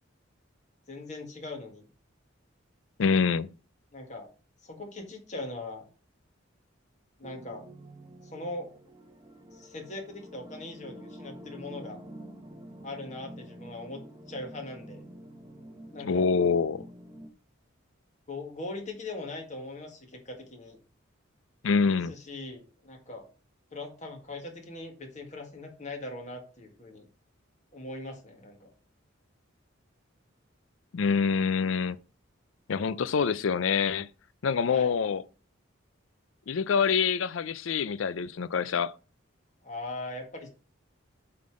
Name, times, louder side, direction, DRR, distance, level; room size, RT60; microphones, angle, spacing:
voice 1, 0.9-1.9 3.9-4.3 4.6-5.8 7.2-7.7 8.2-8.7 9.5-12.0 12.8-14.0 14.3-15.0 15.9-16.3 16.8-16.9 18.3-20.8 21.9-23.3 23.7-27.1 27.7-28.7 34.7-34.9 39.6-40.5, left 2 dB, 35° left, 1.9 m, -40 dB
voice 2, 3.0-3.5 16.0-16.8 21.6-22.1 30.9-32.0 32.7-34.1 34.4-35.2 36.5-38.9, left 5 dB, 75° left, 0.4 m, -26 dB
sound 1, 7.2-17.3, equal, 20° right, 0.8 m, -47 dB
7.7 x 3.8 x 4.9 m
head